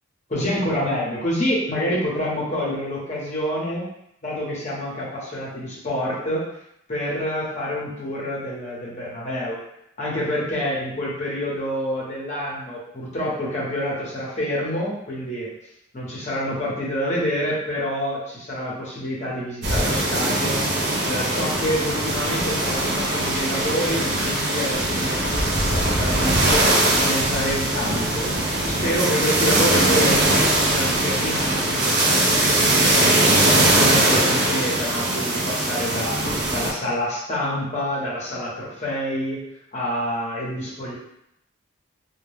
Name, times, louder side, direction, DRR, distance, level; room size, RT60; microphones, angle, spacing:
voice 1, 0.3-3.8 4.2-6.5 6.9-9.6 10.0-15.5 15.9-26.7 27.0-33.3 33.5-36.2 36.5-39.4 39.7-40.9, equal, 35° left, -5 dB, 0.8 m, -27 dB
sound 1, 19.6-36.7, right 1 dB, 55° right, 0.5 m, -21 dB
2.2 x 2.1 x 3.2 m, 0.78 s
head